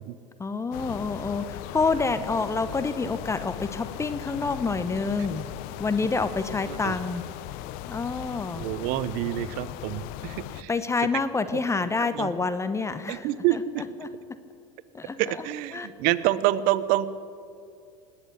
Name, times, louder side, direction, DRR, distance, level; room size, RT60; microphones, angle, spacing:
voice 1, 0.4-5.5 5.8-7.2 7.9-8.7 10.7-13.3 13.5-13.6 14.0-14.1 14.9-15.2 15.7-15.9, left 4 dB, 15° left, 11 dB, 0.9 m, -27 dB
sound 1, 0.7-10.6, left 13 dB, 65° left, 0.7 m, -38 dB
voice 2, 8.6-10.7 11.1-11.2 12.0-12.3 13.1-13.8 15.2-17.1, right 14 dB, 60° right, 17 dB, 0.8 m, -27 dB
19.5 x 8.5 x 8.4 m, 2.5 s
hypercardioid pair, 95°, 16 cm